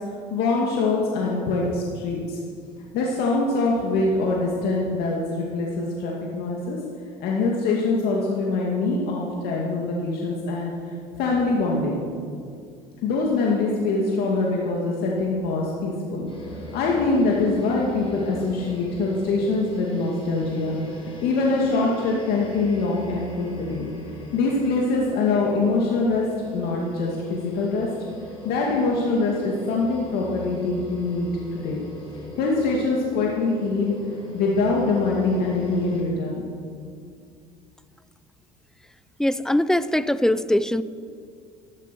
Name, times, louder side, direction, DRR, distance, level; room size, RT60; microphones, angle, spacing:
voice 1, 0.3-2.4 2.9-6.8 7.2-10.7 11.2-12.0 13.0-16.3 16.7-20.8 21.2-23.9 24.3-26.2 26.5-27.9 28.4-31.8 32.4-33.9 34.3-36.5, left 3 dB, 70° left, -2 dB, 2.3 m, -24 dB
sound 1, 16.3-36.0, left 1 dB, 30° left, 4.7 m, -40 dB
voice 2, 39.2-40.8, left 1 dB, 5° left, 15 dB, 0.5 m, -21 dB
13.0 x 12.0 x 7.0 m, 2.3 s
supercardioid pair, 100°, 17 cm